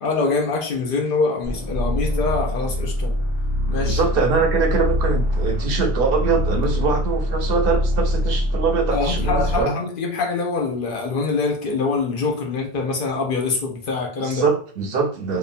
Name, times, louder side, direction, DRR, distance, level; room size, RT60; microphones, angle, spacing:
voice 1, 0.0-3.1 3.7-4.1 8.9-14.4, left 4 dB, 60° left, 0.7 m, -24 dB
sound 1, 1.4-9.7, equal, 30° left, 1.0 m, -23 dB
voice 2, 3.8-9.8 14.2-15.4, right 5 dB, 70° right, 0.8 m, -23 dB
2.8 x 2.0 x 2.5 m
omnidirectional pair, 1.1 m